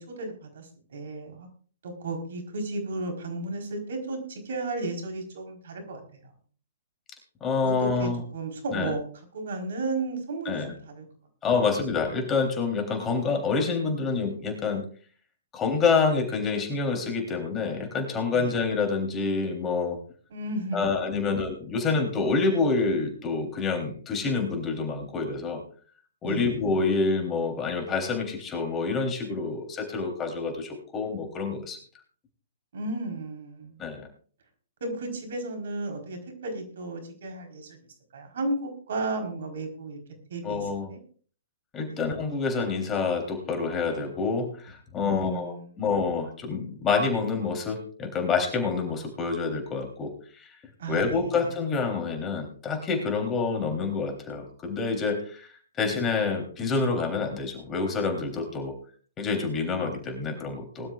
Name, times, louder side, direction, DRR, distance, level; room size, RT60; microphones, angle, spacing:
voice 1, 0.0-1.5 1.8-6.2 7.6-9.0 9.3-11.0 11.5-11.6 18.3-18.5 20.3-20.9 21.2-21.3 26.2-26.6 32.7-33.8 34.8-37.8 38.1-40.0 40.3-41.0 41.9-42.1 45.0-45.7 50.8-51.2, right 2 dB, 65° right, 4 dB, 4.3 m, -34 dB
voice 2, 7.4-8.2 8.7-8.9 10.4-10.7 11.4-14.8 15.5-20.0 20.7-25.6 26.2-31.8 33.8-34.1 40.4-40.9 41.7-50.5 50.9-55.5 55.8-58.7 59.2-60.9, left 4 dB, 20° left, 3 dB, 3.5 m, -27 dB
20.5 x 12.5 x 2.5 m, 0.43 s
hypercardioid pair, 130°, 0 cm